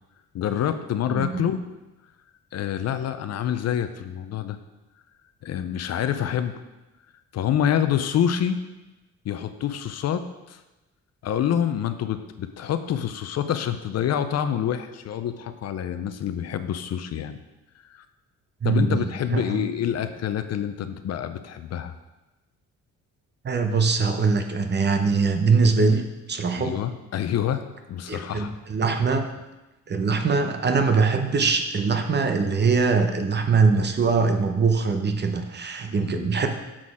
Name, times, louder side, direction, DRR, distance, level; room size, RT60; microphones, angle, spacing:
voice 1, 0.3-1.6 2.5-4.6 5.4-6.6 7.3-8.6 9.2-10.6 11.2-17.4 17.9-18.0 18.6-21.9 26.5-28.5 36.0-36.4, left 9 dB, 60° left, 10 dB, 0.6 m, -27 dB
voice 2, 1.1-1.5 18.6-19.0 19.3-19.5 23.4-26.7 28.1-29.3 29.9-36.5, right 4 dB, 35° right, 6 dB, 0.8 m, -22 dB
7.4 x 4.1 x 4.9 m, 1.0 s
cardioid pair, 90°, 30 cm